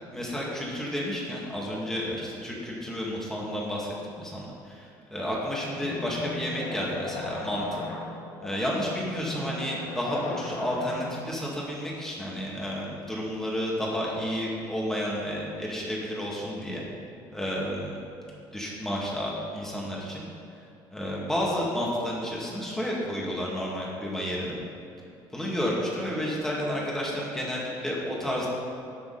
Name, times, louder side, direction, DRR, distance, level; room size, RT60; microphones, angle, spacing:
voice 1, 0.1-7.9 8.4-16.8 17.3-18.0 18.5-20.2 20.9-24.6 25.3-28.5, equal, 5° left, -4 dB, 2.3 m, -31 dB
sound 1, 5.4-11.4, left 3 dB, 75° left, 2.3 m, -38 dB
18.5 x 6.9 x 4.2 m, 2.7 s
cardioid pair, 165°, 9 cm